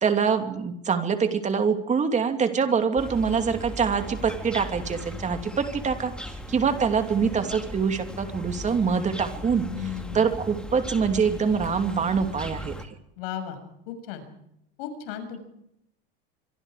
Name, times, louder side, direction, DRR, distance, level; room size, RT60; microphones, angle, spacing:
voice 1, 0.0-6.1 6.5-9.7 10.1-12.7, right 6 dB, 25° right, 6 dB, 2.8 m, -24 dB
sound 1, 3.0-12.9, equal, 5° left, 2.5 m, -38 dB
voice 2, 9.7-10.4 13.2-13.6 13.9-14.2 14.8-15.4, left 10 dB, 70° left, 8 dB, 6.6 m, -35 dB
26.0 x 24.0 x 5.0 m, 0.77 s
supercardioid pair, 120°, 29 cm